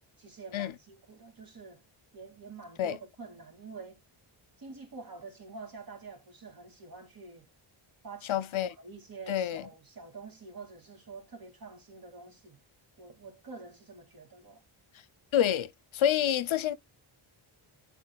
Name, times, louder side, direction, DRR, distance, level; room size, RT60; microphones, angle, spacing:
voice 1, 0.2-1.8 2.1-4.0 4.6-7.5 8.0-12.6 13.0-14.6, right 4 dB, 45° right, 2.3 m, -47 dB
voice 2, 8.3-8.7 9.3-9.6 15.3-16.7, left 10 dB, 70° left, 0.7 m, -28 dB
9.3 x 4.5 x 2.3 m
wide cardioid pair, 135°, 49 cm